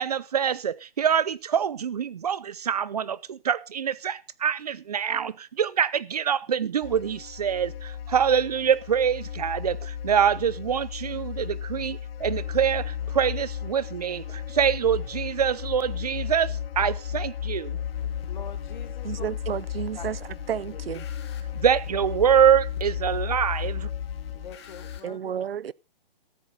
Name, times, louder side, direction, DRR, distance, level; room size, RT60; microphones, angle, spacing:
voice 1, 0.0-17.8 21.5-23.9, right 8 dB, 45° right, 0.6 m, -25 dB
sound 1, 6.8-25.0, left 9 dB, 75° left, 0.6 m, -34 dB
sound 2, 17.8-25.0, left 8 dB, 30° left, 1.8 m, -41 dB
voice 2, 18.3-19.3 20.0-20.1 20.7-20.8 24.3-25.3, left 6 dB, 50° left, 1.9 m, -44 dB
voice 3, 19.0-20.2 20.5-21.1 25.0-25.7, right 8 dB, 85° right, 0.6 m, -31 dB
14.0 x 9.9 x 3.9 m
hypercardioid pair, 170°, 29 cm